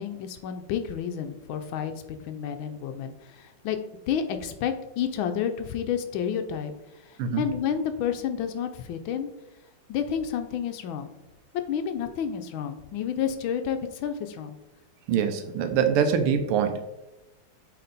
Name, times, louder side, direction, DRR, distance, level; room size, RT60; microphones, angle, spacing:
voice 1, 0.0-3.8 4.1-9.3 9.9-11.1 11.7-14.6, left 8 dB, 75° left, 8 dB, 1.3 m, -30 dB
voice 2, 15.1-16.8, right 7 dB, 90° right, 8 dB, 1.7 m, -24 dB
8.6 x 3.7 x 4.0 m, 0.98 s
omnidirectional pair, 2.4 m